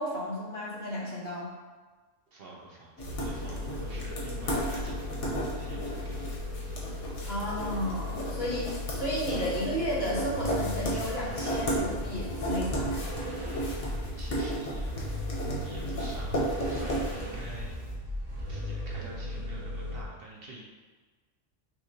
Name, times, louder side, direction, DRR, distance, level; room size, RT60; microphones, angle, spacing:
voice 1, 0.0-1.5 7.3-13.0, equal, 55° left, -7 dB, 1.5 m, -33 dB
voice 2, 2.3-6.3 14.2-15.0 15.6-17.8 18.5-20.6, right 2 dB, 55° right, -3 dB, 0.9 m, -47 dB
sound 1, 3.0-17.8, equal, 80° left, 1.3 m, -34 dB
sound 2, 3.0-20.0, left 1 dB, 80° right, 1.4 m, -37 dB
5.6 x 3.1 x 2.8 m, 1.4 s
omnidirectional pair, 1.2 m